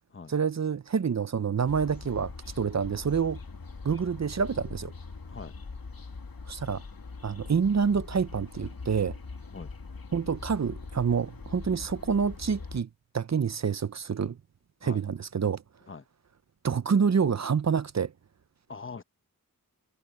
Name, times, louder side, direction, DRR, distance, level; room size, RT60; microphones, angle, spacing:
voice 1, 0.3-3.4 3.8-4.9 6.5-6.8 7.2-9.2 10.1-12.9 13.1-14.4 14.8-15.6 16.6-18.1, right 6 dB, 50° right, 0.6 m, -27 dB
sound 1, 1.7-12.8, left 4 dB, 70° left, 2.3 m, -42 dB
voice 2, 18.7-19.0, left 4 dB, 35° left, 0.9 m, -42 dB
wide cardioid pair, 85°, 37 cm